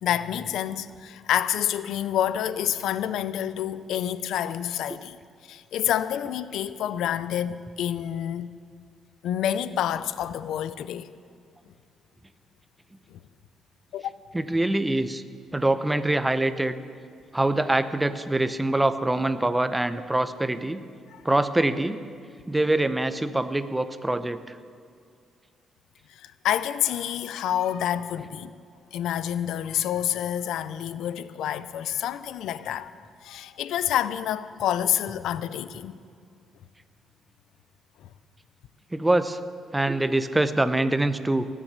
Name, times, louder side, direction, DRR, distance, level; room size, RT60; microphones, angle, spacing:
voice 1, 0.0-5.2 5.4-8.5 9.2-11.1 13.1-13.2 13.9-14.1 21.1-21.2 26.1-28.6 28.9-36.0 38.0-38.1, left 10 dB, 80° left, 0.5 m, -28 dB
voice 2, 14.3-15.2 15.5-16.8 17.3-20.8 21.2-22.0 22.5-24.6 38.9-39.4 39.7-41.5, right 2 dB, 10° right, 0.7 m, -24 dB
18.5 x 7.5 x 8.1 m
cardioid pair, 90°, 0 cm